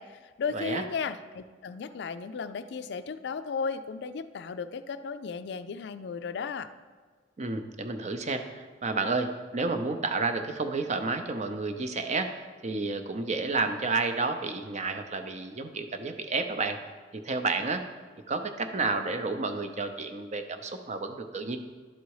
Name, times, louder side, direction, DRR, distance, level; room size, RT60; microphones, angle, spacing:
voice 1, 0.0-6.7, left 5 dB, 65° left, 12 dB, 0.4 m, -35 dB
voice 2, 0.5-0.8 7.4-16.8 17.1-17.9 18.3-21.6, right 3 dB, 40° right, 7 dB, 0.6 m, -31 dB
11.5 x 4.0 x 4.7 m, 1.5 s
head